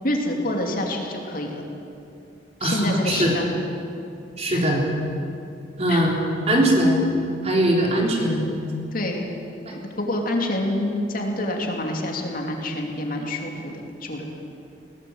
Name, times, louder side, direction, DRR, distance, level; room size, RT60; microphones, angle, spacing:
voice 1, 0.0-1.6 2.6-3.5 4.5-4.6 5.9-6.0 8.9-9.3 9.7-14.3, left 1 dB, 45° left, 1 dB, 2.8 m, -27 dB
voice 2, 2.6-3.4 4.4-4.9 5.8-7.0 7.4-8.5 9.7-9.8, right 1 dB, 35° right, -1 dB, 3.7 m, -21 dB
21.0 x 18.5 x 8.0 m, 2.6 s
head